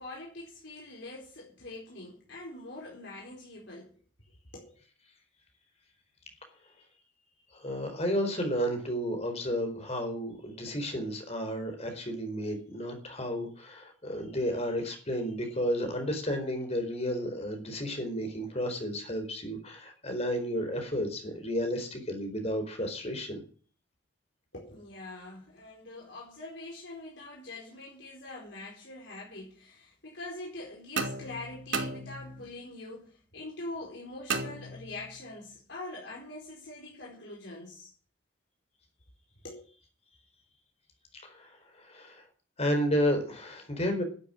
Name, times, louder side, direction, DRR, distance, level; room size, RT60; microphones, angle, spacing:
voice 1, 0.0-3.9 4.5-4.8 24.5-37.9 39.4-39.6, left 2 dB, 65° left, 4.7 m, -44 dB
voice 2, 7.5-23.4 41.1-42.2 42.6-44.0, equal, 35° left, 4.2 m, -32 dB
sound 1, 31.0-32.6 34.3-35.3, right 3 dB, 80° right, 2.6 m, -35 dB
12.5 x 8.5 x 10.0 m
head